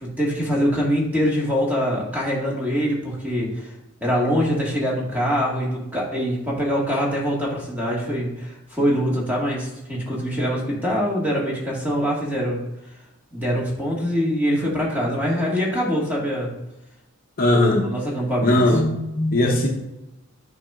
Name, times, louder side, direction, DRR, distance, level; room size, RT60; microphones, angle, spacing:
voice 1, 0.0-3.7 4.0-12.6 13.3-16.5 17.8-18.6, equal, 10° right, -4 dB, 1.6 m, -24 dB
voice 2, 17.4-17.9 18.4-19.7, left 1 dB, 40° left, 1 dB, 0.8 m, -19 dB
8.9 x 5.4 x 2.4 m, 0.93 s
head